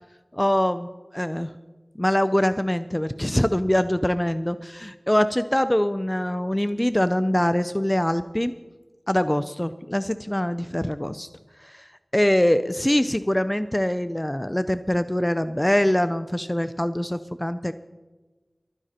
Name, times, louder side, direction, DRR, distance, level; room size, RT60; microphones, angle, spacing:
voice 1, 0.3-1.5 2.0-8.5 9.1-11.3 11.6-11.9 12.1-17.7, left 1 dB, 15° left, 12 dB, 0.5 m, -23 dB
23.5 x 10.0 x 4.3 m, 1.2 s
wide cardioid pair, 45°, 0 cm